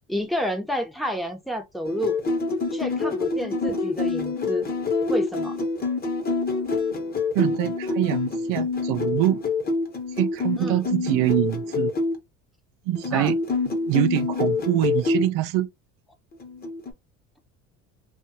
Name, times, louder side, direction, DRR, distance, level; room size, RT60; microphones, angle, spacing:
voice 1, 0.1-2.2 2.7-4.7 5.1-5.6 10.6-10.8 13.1-13.3, equal, ahead, 0.8 m, -29 dB
sound 1, 1.8-12.1 12.9-15.2 16.4-16.9, left 4 dB, 25° left, 1.0 m, -26 dB
voice 2, 7.3-9.4 10.2-11.9 12.9-13.4 13.9-15.7, right 15 dB, 70° right, 0.6 m, -24 dB
2.7 x 2.4 x 2.7 m
supercardioid pair, 95°, 34 cm